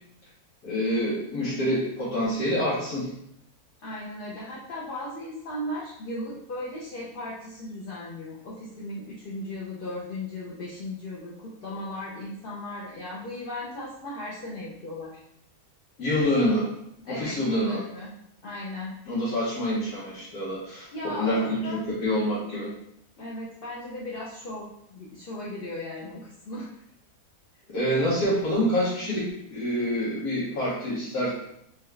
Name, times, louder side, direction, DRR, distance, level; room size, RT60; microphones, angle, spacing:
voice 1, 0.6-3.1 16.0-16.7 17.1-17.8 19.1-22.7 27.7-31.3, equal, 85° left, -9 dB, 1.5 m, -26 dB
voice 2, 3.8-15.1 17.0-18.2 18.4-19.0 20.9-21.8 23.2-26.7, left 1 dB, 50° left, -6 dB, 0.7 m, -36 dB
4.6 x 2.4 x 3.1 m, 0.74 s
omnidirectional pair, 1.5 m